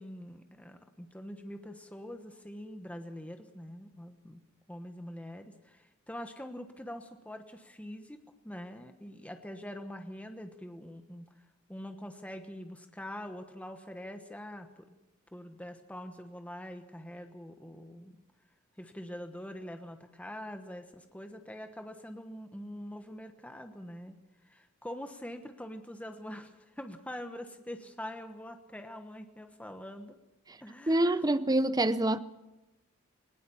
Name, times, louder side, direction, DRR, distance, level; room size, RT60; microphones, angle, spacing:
voice 1, 0.0-4.4 4.7-8.2 8.4-15.0 15.3-18.2 18.8-24.2 24.4-30.2 30.6-31.2, equal, 5° left, 1.2 m, -44 dB
voice 2, 30.9-32.2, right 1 dB, 15° right, 0.7 m, -26 dB
20.0 x 19.5 x 7.1 m
head